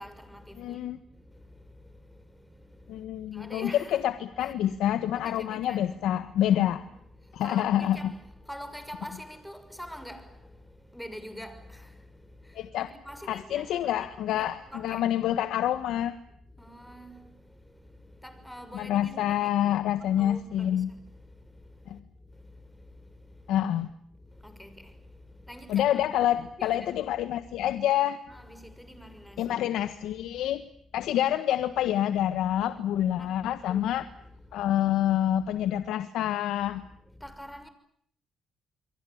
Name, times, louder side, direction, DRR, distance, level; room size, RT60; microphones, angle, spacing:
voice 1, 0.0-0.8 1.1-4.1 4.4-4.8 5.1-15.2 16.5-23.6 24.2-27.1 27.6-27.7 28.3-29.5 30.0-30.6 31.0-31.1 32.5-34.7 35.4-35.5 36.7-37.7, equal, ahead, 6.3 m, -47 dB
voice 2, 0.6-1.0 2.9-6.8 7.3-8.1 12.5-12.9 13.3-16.1 18.7-20.9 21.9-22.0 23.5-23.9 25.7-28.2 29.4-30.6 30.9-34.0 34.5-36.8, left 11 dB, 85° left, 1.5 m, -27 dB
28.0 x 23.5 x 8.8 m
cardioid pair, 90°, 0 cm